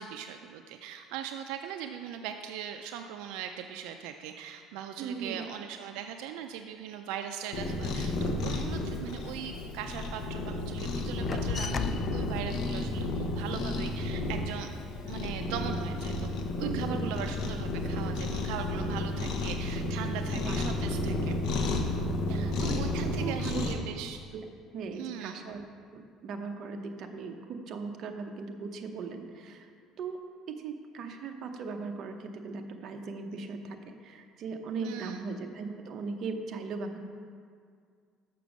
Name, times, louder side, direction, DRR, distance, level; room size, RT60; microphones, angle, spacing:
voice 1, 0.0-14.7 15.1-16.3 16.6-21.5 22.3-24.2 25.0-25.4 34.8-35.2, right 9 dB, 85° right, 6 dB, 0.4 m, -40 dB
voice 2, 5.0-5.5 16.6-17.2 20.3-20.6 22.3-23.7 24.3-24.4 24.7-25.6 25.9-29.7 30.0-30.2 30.5-37.0, right 4 dB, 50° right, 4 dB, 0.8 m, -38 dB
Cat, 7.5-23.7, left 2 dB, 65° left, 1.0 m, -32 dB
sound 1, 11.2-16.2 16.5-17.9 18.1-19.0 19.3-20.7 21.1-21.7, left 5 dB, 30° left, 0.3 m, -40 dB
6.8 x 6.0 x 6.3 m, 2.2 s
cardioid pair, 135°, 0 cm